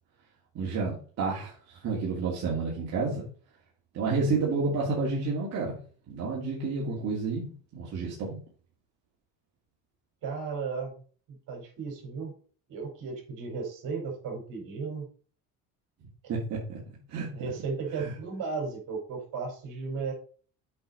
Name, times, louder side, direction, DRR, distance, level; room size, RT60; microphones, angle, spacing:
voice 1, 0.5-3.2 3.9-5.8 6.1-8.4 16.3-16.8 17.1-17.5 17.9-18.1, right 4 dB, 45° right, -6 dB, 2.6 m, -30 dB
voice 2, 10.2-10.9 11.5-12.3 12.7-15.0 17.3-20.1, right 5 dB, 65° right, 1 dB, 4.5 m, -35 dB
8.5 x 5.3 x 4.2 m, 0.42 s
cardioid pair, 135°, 35 cm